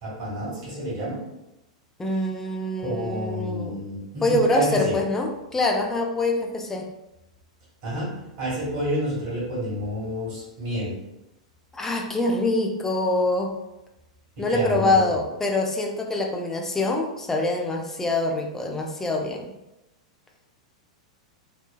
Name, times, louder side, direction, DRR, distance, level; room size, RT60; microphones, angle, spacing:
voice 1, 0.0-1.2 2.8-5.0 7.8-11.0 14.4-15.2, equal, 55° right, -7 dB, 1.5 m, -29 dB
voice 2, 2.0-3.8 4.2-6.9 11.7-13.6 14.4-19.6, left 2 dB, 10° left, 1 dB, 0.4 m, -25 dB
3.1 x 2.2 x 2.3 m, 0.94 s
figure-of-eight pair, 95°, 4 cm